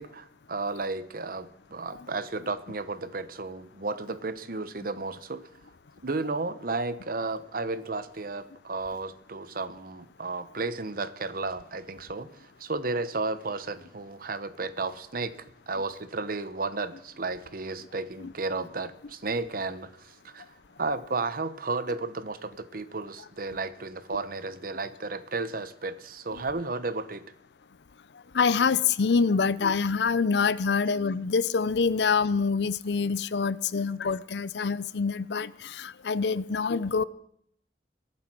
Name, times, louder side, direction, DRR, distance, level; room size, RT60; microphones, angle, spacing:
voice 1, 0.0-5.5 6.0-15.3 15.7-20.4 20.8-27.3, right 3 dB, 55° right, 0.9 m, -33 dB
voice 2, 28.3-37.0, left 5 dB, 70° left, 0.5 m, -26 dB
22.0 x 8.7 x 6.2 m
head